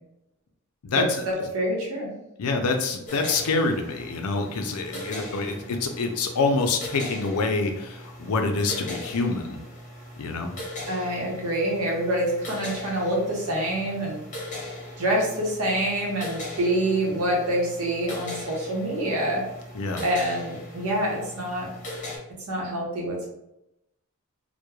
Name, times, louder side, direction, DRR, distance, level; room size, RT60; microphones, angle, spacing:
voice 1, 0.9-2.1 10.9-14.3 15.0-19.4 20.0-21.7 22.5-23.3, right 1 dB, 80° right, -2 dB, 0.9 m, -26 dB
voice 2, 2.4-9.6 10.2-10.5 19.7-20.0, left 3 dB, 85° left, 5 dB, 0.4 m, -26 dB
sound 1, 3.1-22.2, left 1 dB, 35° left, 0.7 m, -39 dB
3.0 x 2.1 x 2.2 m, 0.87 s
head